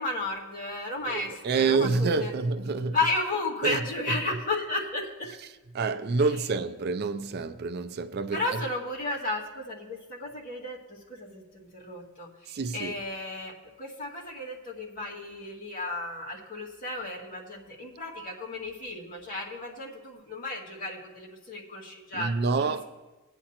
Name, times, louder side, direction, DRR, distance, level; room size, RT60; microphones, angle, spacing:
voice 1, 0.0-2.3 2.9-5.4 8.3-22.8, left 2 dB, 40° left, 2.0 m, -33 dB
voice 2, 1.1-3.0 3.6-3.8 5.7-8.6 12.5-12.9 22.1-22.8, right 4 dB, 50° right, 0.4 m, -27 dB
19.5 x 8.8 x 2.9 m
head